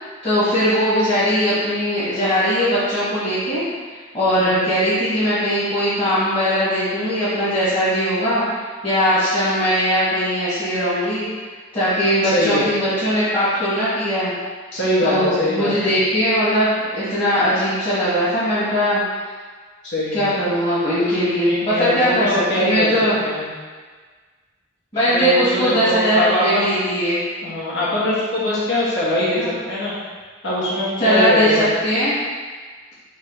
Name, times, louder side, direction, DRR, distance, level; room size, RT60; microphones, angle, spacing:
voice 1, 0.2-3.6 4.1-11.2 11.7-14.3 15.0-19.0 20.1-22.3 22.6-23.2 24.9-27.2 29.4-29.5 31.0-32.1, equal, 30° left, -15 dB, 1.4 m, -20 dB
voice 2, 4.4-4.7 12.3-12.7 14.7-16.0 19.8-20.3 21.4-22.9 23.2-23.5 25.1-26.7 27.4-29.9 30.4-31.7, left 1 dB, 70° left, -8 dB, 1.4 m, -22 dB
3.7 x 3.2 x 3.8 m, 1.5 s
head